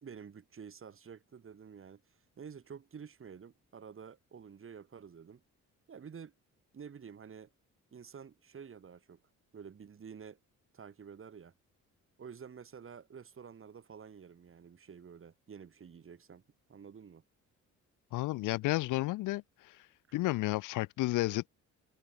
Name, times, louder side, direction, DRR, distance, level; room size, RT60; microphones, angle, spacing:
voice 1, 0.0-2.0 2.4-5.4 5.9-6.3 6.7-7.5 7.9-9.2 9.5-10.4 10.7-11.5 12.2-16.4 16.7-17.2 20.1-20.2, right 7 dB, 45° right, 4.0 m, -50 dB
voice 2, 18.1-19.8 20.1-21.5, left 18 dB, 85° left, 0.6 m, -32 dB
cardioid pair, 90°, 30 cm